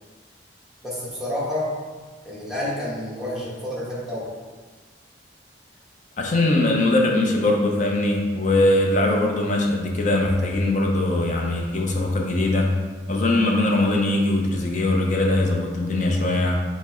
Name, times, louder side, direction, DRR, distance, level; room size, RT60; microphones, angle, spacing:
voice 1, 0.8-1.7 2.2-4.2, left 1 dB, 5° right, -8 dB, 1.0 m, -29 dB
voice 2, 6.2-12.7 13.1-16.6, left 2 dB, 45° left, 0 dB, 0.5 m, -21 dB
4.3 x 2.0 x 4.2 m, 1.4 s
head